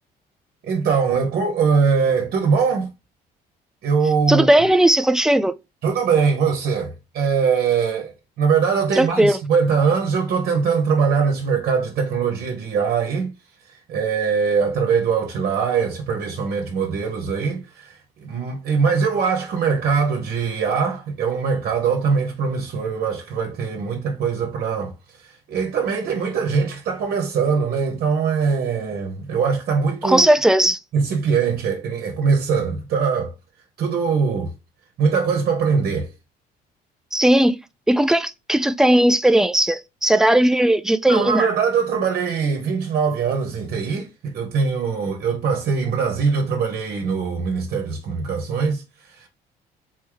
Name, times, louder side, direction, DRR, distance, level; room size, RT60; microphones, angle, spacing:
voice 1, 0.6-2.9 3.8-4.5 5.8-13.3 13.9-24.9 25.2-30.3 30.9-33.3 33.8-34.5 35.0-36.1 41.1-49.3, right 5 dB, 65° right, 1.1 m, -22 dB
voice 2, 4.3-5.5 8.9-9.4 30.0-30.8 37.1-37.6 37.9-41.5, right 1 dB, 5° right, 0.4 m, -17 dB
4.1 x 3.1 x 3.8 m
cardioid pair, 110°, 17 cm